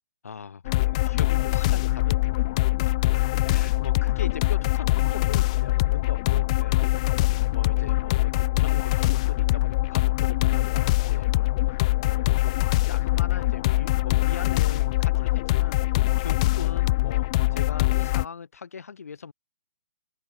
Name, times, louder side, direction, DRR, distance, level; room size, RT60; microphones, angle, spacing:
voice 1, 0.2-2.4 3.5-6.8 7.5-11.6 12.0-12.5 12.9-15.8 16.2-19.3, left 6 dB, 70° left, 7.3 m, -40 dB
sound 1, 0.7-18.2, left 19 dB, 25° left, 1.3 m, -23 dB
open air
hypercardioid pair, 165°, 8 cm